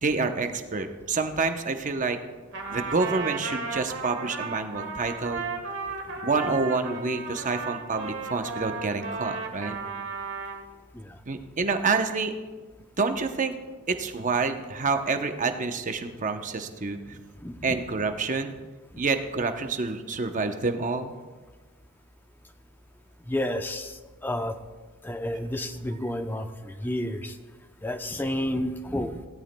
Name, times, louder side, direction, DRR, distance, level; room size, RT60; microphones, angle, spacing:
voice 1, 0.0-2.2 2.7-5.5 6.2-9.7 11.3-12.3 13.0-13.5 13.9-17.2 17.6-18.5 19.0-21.1, right 4 dB, 35° right, 7 dB, 0.8 m, -28 dB
Trumpet, 2.5-10.6, right 4 dB, 60° right, 1.4 m, -34 dB
voice 2, 17.4-17.8 23.3-24.6 25.0-27.3 27.8-29.3, left 1 dB, 10° left, 7 dB, 0.6 m, -31 dB
17.0 x 13.0 x 2.2 m, 1.3 s
head